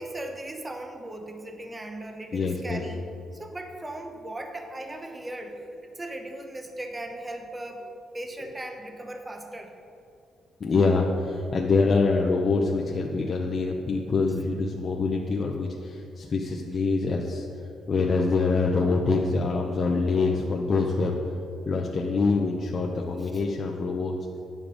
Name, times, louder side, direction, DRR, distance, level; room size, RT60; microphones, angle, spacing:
voice 1, 0.0-3.0 3.3-7.8 8.1-9.7 23.2-23.4, right 1 dB, 20° right, 4 dB, 0.9 m, -38 dB
voice 2, 2.3-2.8 10.6-17.4 17.9-21.2 21.7-24.2, left 4 dB, 45° left, -1 dB, 0.8 m, -25 dB
9.5 x 7.2 x 5.0 m, 2.5 s
cardioid pair, 90°, 0 cm